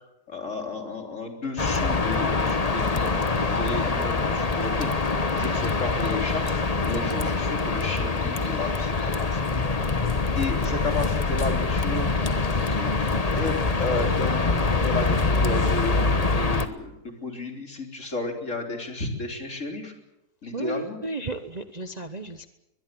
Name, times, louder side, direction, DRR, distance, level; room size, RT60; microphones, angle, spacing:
voice 1, 0.3-6.5 6.8-9.6 10.3-12.1 12.5-16.9 17.2-19.9 20.4-21.0, left 2 dB, 45° left, 3 dB, 4.0 m, -33 dB
sound 1, 1.6-16.7, left 3 dB, 25° left, 1.1 m, -24 dB
voice 2, 20.5-22.5, right 2 dB, 30° right, 8 dB, 0.9 m, -34 dB
22.5 x 21.5 x 7.6 m, 0.90 s
omnidirectional pair, 1.7 m